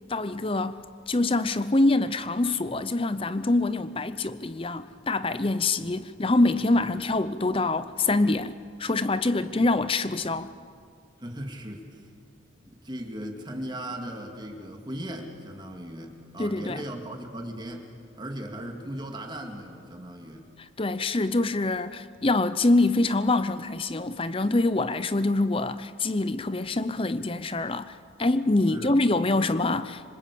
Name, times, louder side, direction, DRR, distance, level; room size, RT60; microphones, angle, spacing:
voice 1, 0.1-0.8 1.1-10.5 16.4-16.8 20.6-30.0, left 2 dB, 25° left, 0.6 m, -25 dB
voice 2, 9.3-9.6 11.2-12.0 12.7-17.9 18.2-20.5 28.7-29.0, equal, 20° right, 2.2 m, -38 dB
26.0 x 26.0 x 8.5 m
head